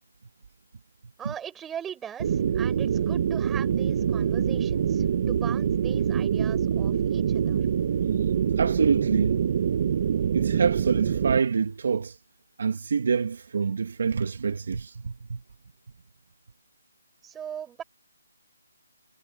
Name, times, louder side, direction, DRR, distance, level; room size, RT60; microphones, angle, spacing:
voice 1, 1.2-7.7 17.2-17.8, right 9 dB, 5° right, 8.0 m, -40 dB
sound 1, 2.2-11.4, right 8 dB, 35° right, 1.3 m, -25 dB
voice 2, 8.6-9.4 10.3-12.2 12.6-15.4, right 5 dB, 55° right, 1.8 m, -26 dB
hypercardioid pair, 170°, 0 cm